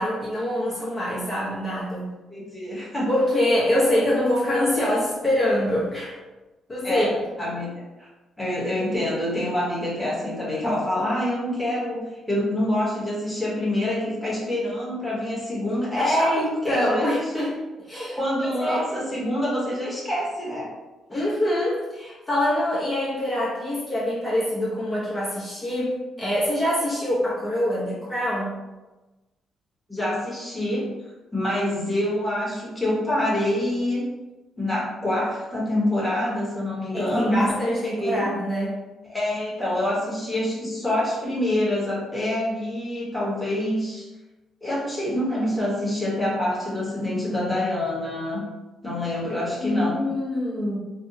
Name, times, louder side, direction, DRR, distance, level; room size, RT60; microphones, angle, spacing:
voice 1, 0.0-2.1 3.1-6.2 6.7-7.1 16.0-18.9 21.1-28.6 36.9-38.8 49.6-50.8, left 1 dB, 30° left, -8 dB, 1.0 m, -25 dB
voice 2, 2.3-3.1 6.8-7.7 8.0-8.1 8.4-16.3 16.6-17.1 18.1-20.7 21.1-21.2 29.9-30.9 31.3-34.1 34.6-37.5 37.8-38.3 39.1-44.1 44.6-48.4 48.8-50.1, left 1 dB, 5° left, -7 dB, 1.3 m, -26 dB
3.4 x 2.3 x 2.8 m, 1.1 s
cardioid pair, 90°, 0 cm